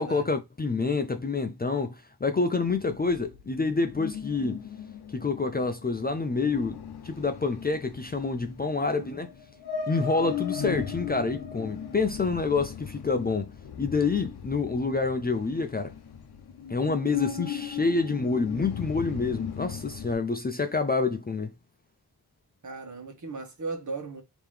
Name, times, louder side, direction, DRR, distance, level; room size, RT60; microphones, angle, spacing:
voice 1, 0.0-4.6 5.1-9.3 9.9-13.5 13.8-15.9 16.7-21.5, left 4 dB, 25° left, 0.4 m, -27 dB
sound 1, 2.7-20.1, left 8 dB, 85° left, 0.7 m, -38 dB
voice 2, 8.7-9.2 22.6-24.2, right 3 dB, 50° right, 1.3 m, -37 dB
3.6 x 2.9 x 3.3 m
wide cardioid pair, 85°, 38 cm